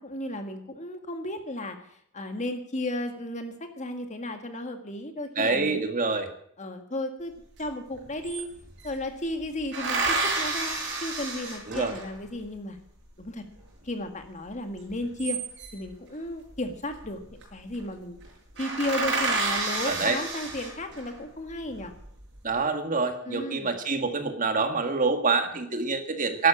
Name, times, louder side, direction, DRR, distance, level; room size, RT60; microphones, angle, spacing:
voice 1, 0.0-5.8 6.6-7.3 7.6-8.5 8.8-12.8 13.2-13.4 13.8-15.4 15.7-18.2 18.6-21.9 23.3-23.8, left 1 dB, 35° left, 6 dB, 1.9 m, -34 dB
voice 2, 5.3-6.3 11.7-11.9 19.8-20.2 22.4-26.5, right 4 dB, 35° right, 7 dB, 1.8 m, -26 dB
sound 1, 7.6-7.7 7.9-9.0 9.7-12.2 14.9-15.9 17.0-17.4 17.7-17.9 18.2-18.3 18.6-21.1 21.7-22.3, right 3 dB, 55° right, 6.3 m, -30 dB
12.5 x 12.0 x 8.7 m, 0.67 s
head